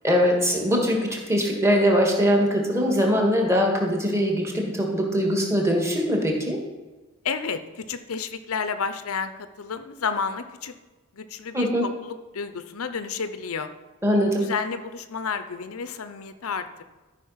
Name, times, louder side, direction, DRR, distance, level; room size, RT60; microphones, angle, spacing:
voice 1, 0.0-6.6 11.5-11.9 14.0-14.5, equal, 15° right, 0 dB, 1.8 m, -22 dB
voice 2, 7.2-9.3 9.6-10.7 11.1-13.7 14.4-16.8, left 5 dB, 80° left, 10 dB, 0.7 m, -31 dB
13.0 x 5.1 x 5.7 m, 1.2 s
head